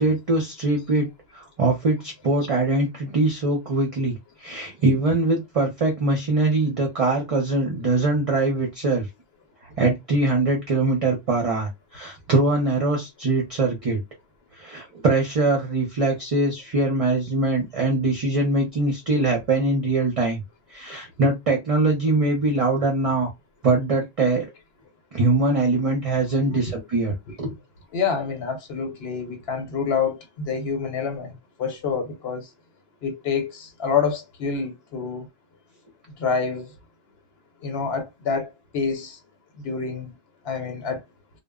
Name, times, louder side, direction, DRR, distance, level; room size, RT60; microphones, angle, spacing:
voice 1, 0.0-4.1 4.4-9.1 9.8-14.0 14.6-20.4 20.7-23.3 23.6-24.4 25.1-27.5, right 2 dB, 40° right, 0.6 m, -22 dB
voice 2, 27.9-32.4 33.0-35.3 36.2-36.7 37.6-39.2 39.6-40.1 40.5-41.0, left 5 dB, 75° left, 1.0 m, -27 dB
2.0 x 2.0 x 3.5 m
omnidirectional pair, 1.0 m